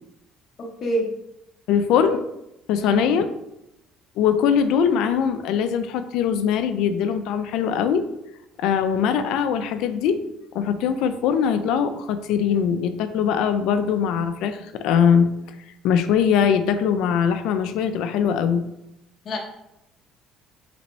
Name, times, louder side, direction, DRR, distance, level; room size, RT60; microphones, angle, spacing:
voice 1, 0.8-1.1 2.8-3.1 19.2-19.4, right 1 dB, 40° left, 0 dB, 0.8 m, -25 dB
voice 2, 1.7-2.2 2.7-3.3 4.2-8.0 8.6-10.2 10.5-15.3 15.8-18.6, left 7 dB, 75° left, 9 dB, 0.4 m, -21 dB
4.0 x 3.4 x 3.1 m, 0.85 s
cardioid pair, 155°, 0 cm